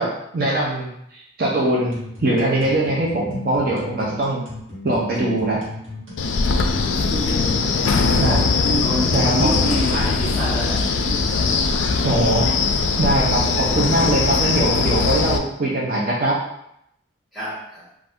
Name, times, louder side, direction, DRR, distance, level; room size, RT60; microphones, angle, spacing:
voice 1, 0.0-4.4 4.8-5.6 8.1-8.4 9.1-9.5 12.0-12.5 13.0-16.4, right 1 dB, 50° right, -4 dB, 0.5 m, -21 dB
sound 1, 1.9-14.7, left 2 dB, 80° right, 1.2 m, -35 dB
Wind, 6.2-15.4, left 4 dB, 70° left, 0.3 m, -20 dB
voice 2, 6.8-11.2 17.3-17.8, right 1 dB, ahead, -10 dB, 1.2 m, -29 dB
2.6 x 2.4 x 3.4 m, 0.76 s
head